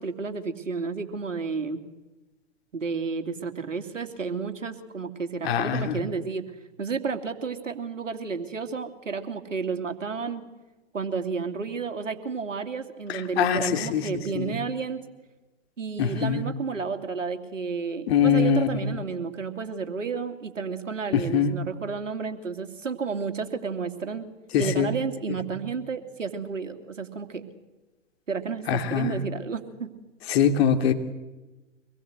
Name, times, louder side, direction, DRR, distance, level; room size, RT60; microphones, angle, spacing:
voice 1, 0.0-1.8 2.7-6.4 6.8-10.4 10.9-15.0 15.8-24.3 24.6-27.4 28.3-29.9, right 5 dB, 85° right, 8 dB, 3.0 m, -31 dB
voice 2, 5.4-6.0 13.1-14.1 14.3-14.6 16.0-16.4 18.1-18.9 21.1-21.5 24.5-24.9 25.5-25.6 28.7-29.2 30.3-30.9, left 7 dB, 55° left, 7 dB, 3.2 m, -23 dB
25.5 x 21.5 x 8.1 m, 1.1 s
hypercardioid pair, 110°, 37 cm